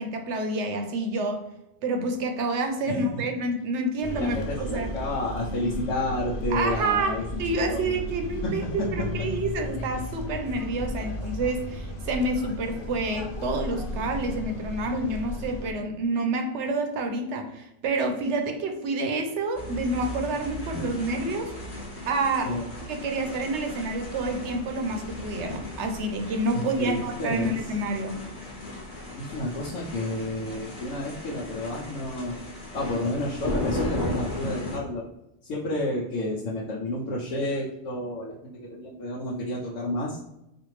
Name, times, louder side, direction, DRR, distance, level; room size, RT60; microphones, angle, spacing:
voice 1, 0.0-1.4 1.8-4.9 6.5-21.5 22.1-22.5 22.9-28.2, right 2 dB, 70° right, 5 dB, 0.9 m, -28 dB
voice 2, 2.9-3.2 4.2-7.2 7.5-7.8 8.4-8.5 8.8-8.9 22.5-22.6 26.5-27.5 29.2-32.4 32.7-35.0 35.4-40.2, left 1 dB, 90° left, -4 dB, 1.1 m, -30 dB
sound 1, 4.0-15.7, left 1 dB, 60° left, 0.6 m, -34 dB
sound 2, 19.6-34.8, left 1 dB, 35° left, 0.9 m, -36 dB
4.3 x 2.5 x 3.1 m, 0.88 s
omnidirectional pair, 1.3 m